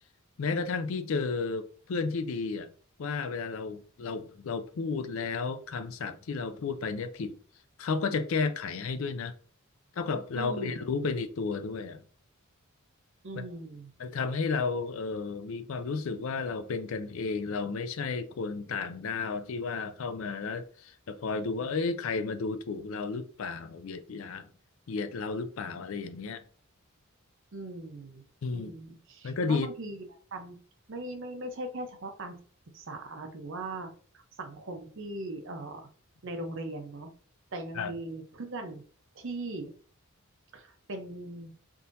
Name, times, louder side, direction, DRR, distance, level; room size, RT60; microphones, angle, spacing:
voice 1, 0.4-2.7 3.0-7.3 7.8-9.3 10.0-12.0 13.3-13.4 14.0-24.5 24.9-26.4 28.4-28.7 29.2-29.7 37.8-37.9, left 4 dB, 65° left, 0.4 m, -32 dB
voice 2, 10.3-10.7 13.2-13.9 27.5-28.2 28.5-30.0 30.3-30.5 30.9-32.4 32.7-35.9 36.2-37.1 37.5-38.8 39.1-39.7 40.5-41.5, right 2 dB, 60° right, 0.7 m, -39 dB
3.7 x 2.8 x 2.5 m
head